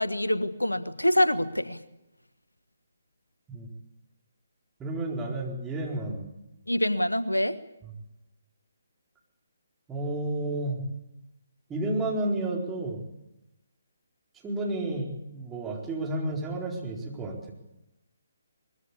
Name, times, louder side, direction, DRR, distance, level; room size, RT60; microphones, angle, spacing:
voice 1, 0.0-1.8 6.7-7.6, left 1 dB, 85° left, 13 dB, 1.4 m, -25 dB
voice 2, 4.8-6.2 9.9-10.8 11.7-13.0 14.4-17.5, right 2 dB, 10° right, -2 dB, 4.4 m, -31 dB
23.0 x 21.0 x 8.5 m, 0.94 s
figure-of-eight pair, 140°, 0 cm